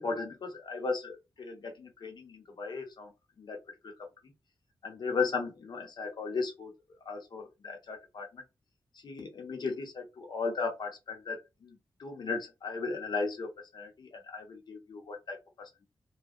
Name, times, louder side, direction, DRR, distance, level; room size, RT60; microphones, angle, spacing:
voice 1, 0.0-3.1 3.4-4.1 4.8-6.7 7.0-8.4 9.0-15.8, left 4 dB, 60° left, 0.9 m, -36 dB
2.7 x 2.1 x 2.5 m
wide cardioid pair, 175°, 8 cm